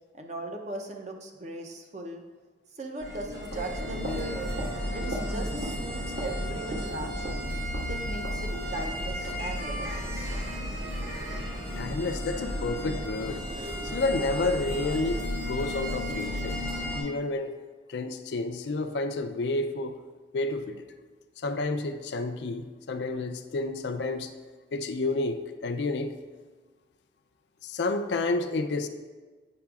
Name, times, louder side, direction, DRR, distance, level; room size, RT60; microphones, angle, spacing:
voice 1, 0.1-2.2 2.7-4.5 4.9-7.5 7.8-10.4, right 2 dB, 35° right, 3 dB, 0.5 m, -39 dB
Edinburgh Bagpipe Busker, 3.0-17.0, equal, 80° right, 1.7 m, -33 dB
voice 2, 11.8-13.4 13.8-16.6 16.9-17.6 17.9-20.0 20.3-20.9 21.4-24.3 24.7-26.1 27.6-28.9, left 2 dB, 65° left, 8 dB, 0.4 m, -30 dB
8.5 x 5.8 x 2.3 m, 1.4 s
head